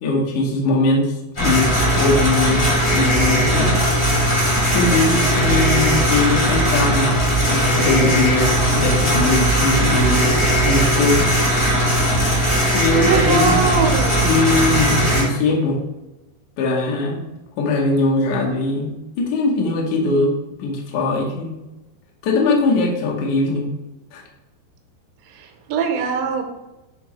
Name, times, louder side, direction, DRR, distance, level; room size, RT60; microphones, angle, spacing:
voice 1, 0.0-4.0 4.7-7.2 7.4-11.3 12.1-12.5 12.7-13.6 14.2-15.8 16.6-17.3 17.6-21.5 22.2-23.7 24.1-24.2, left 2 dB, 85° left, -2 dB, 1.7 m, -21 dB
sound 1, 1.4-15.2, equal, 45° left, 0.6 m, -18 dB
voice 2, 12.9-14.5 25.7-26.4, right 5 dB, 85° right, 3 dB, 3.0 m, -21 dB
9.4 x 3.7 x 3.2 m, 1.0 s
omnidirectional pair, 5.2 m